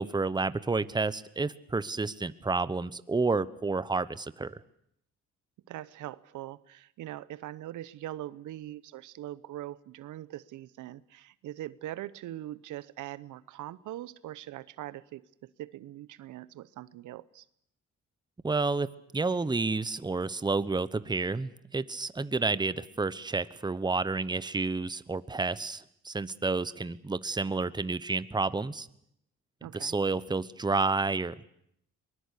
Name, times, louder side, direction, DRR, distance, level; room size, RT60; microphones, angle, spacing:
voice 1, 0.0-4.6 18.4-28.9 29.7-31.4, right 3 dB, 15° right, 16 dB, 0.9 m, -30 dB
voice 2, 5.7-17.4 29.6-30.0, right 14 dB, 85° right, 18 dB, 0.9 m, -42 dB
23.0 x 20.5 x 8.3 m, 0.72 s
cardioid pair, 90°, 30 cm